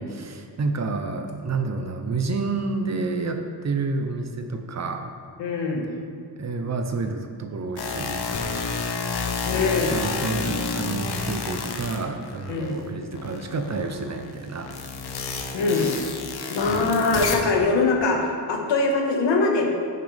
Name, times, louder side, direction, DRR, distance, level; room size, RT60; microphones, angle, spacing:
voice 1, 0.0-5.1 6.4-8.3 9.9-14.8 15.7-15.9 16.7-17.8, right 3 dB, 40° right, 6 dB, 0.8 m, -29 dB
voice 2, 5.4-5.9 9.4-10.0 12.5-12.8 15.5-15.9 16.5-19.7, left 3 dB, 85° left, 0 dB, 1.6 m, -22 dB
sound 1, 7.8-12.7 13.1-17.6, left 4 dB, 65° left, 1.0 m, -30 dB
15.0 x 6.6 x 3.5 m, 2.2 s
wide cardioid pair, 150°, 42 cm